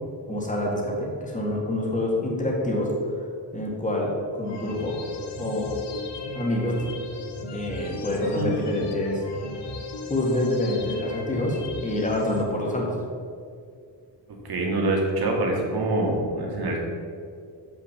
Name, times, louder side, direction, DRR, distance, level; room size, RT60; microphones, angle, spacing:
voice 1, 0.3-2.9 3.5-5.0 5.4-5.7 6.3-6.8 7.5-9.2 10.1-12.9, left 1 dB, 15° left, -2 dB, 1.8 m, -26 dB
sound 1, 4.4-12.4, left 3 dB, 70° left, 1.3 m, -37 dB
voice 2, 14.4-16.8, right 2 dB, 60° right, -1 dB, 2.0 m, -25 dB
7.7 x 5.8 x 7.3 m, 2.3 s
wide cardioid pair, 170°, 43 cm